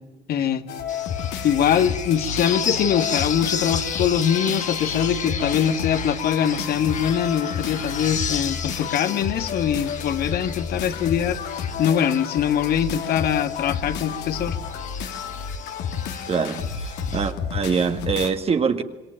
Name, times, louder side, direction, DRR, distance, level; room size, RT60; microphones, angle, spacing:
voice 1, 0.3-0.6 1.4-14.6, left 8 dB, 65° left, 2.0 m, -23 dB
sound 1, 0.7-18.3, left 6 dB, 80° left, 3.0 m, -31 dB
sound 2, 0.9-17.3, left 7 dB, 45° left, 2.5 m, -33 dB
voice 2, 16.3-18.8, right 5 dB, 35° right, 1.7 m, -24 dB
26.5 x 22.5 x 9.0 m
cardioid pair, 110°, 17 cm